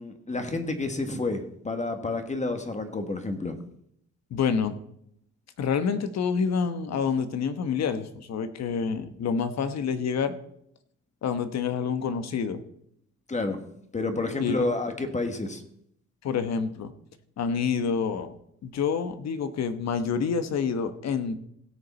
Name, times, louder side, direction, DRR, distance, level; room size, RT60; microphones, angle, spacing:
voice 1, 0.0-3.6 13.3-13.6 13.9-15.6, left 2 dB, 25° left, 7 dB, 1.4 m, -29 dB
voice 2, 4.3-4.8 5.6-10.3 11.2-12.6 14.4-14.7 16.2-16.9 17.4-18.3 18.6-21.4, left 6 dB, 60° left, 10 dB, 1.1 m, -27 dB
17.0 x 6.8 x 4.3 m, 0.73 s
cardioid pair, 90°, 30 cm